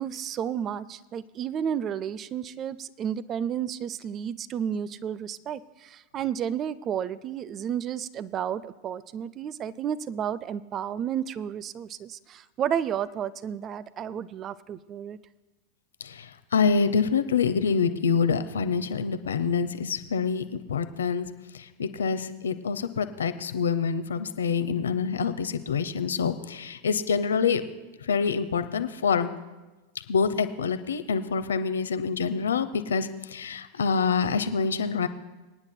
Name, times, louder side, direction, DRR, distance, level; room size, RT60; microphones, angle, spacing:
voice 1, 0.0-15.2, right 9 dB, 35° right, 18 dB, 0.4 m, -32 dB
voice 2, 16.5-21.3 21.8-27.6 28.0-29.3 30.1-35.1, left 5 dB, 80° left, 11 dB, 0.6 m, -26 dB
25.5 x 9.7 x 2.2 m, 1.1 s
hypercardioid pair, 95°, 0 cm